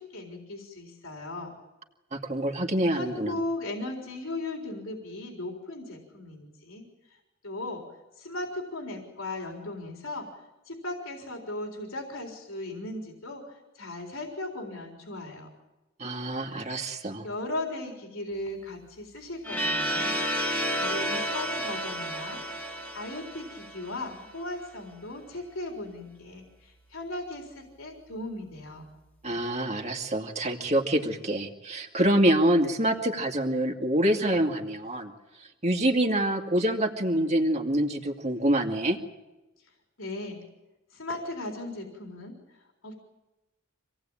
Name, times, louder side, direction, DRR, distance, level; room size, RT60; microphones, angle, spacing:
voice 1, 0.0-1.5 2.9-7.2 7.4-10.3 10.7-15.5 17.2-20.2 20.7-28.9 39.6-39.7 40.0-40.4 40.9-42.9, left 2 dB, 80° left, 1 dB, 4.0 m, -37 dB
voice 2, 2.1-3.3 16.0-17.3 29.2-35.1 35.6-39.0, right 1 dB, 35° right, 4 dB, 2.2 m, -26 dB
sound 1, 19.4-24.3, equal, 5° left, 2.3 m, -31 dB
26.5 x 18.0 x 8.9 m, 1.1 s
head